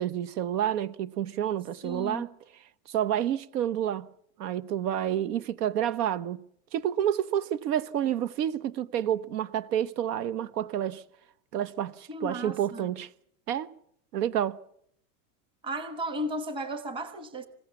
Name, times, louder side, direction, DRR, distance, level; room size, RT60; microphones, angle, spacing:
voice 1, 0.0-2.3 2.9-4.1 4.4-6.4 6.7-11.0 11.5-13.1 13.5-13.7 14.1-14.6, right 10 dB, 85° right, 1.1 m, -29 dB
voice 2, 1.8-2.3 12.1-12.9 15.6-17.5, right 1 dB, 10° right, 1.2 m, -34 dB
27.0 x 16.5 x 7.1 m
supercardioid pair, 165°, 46 cm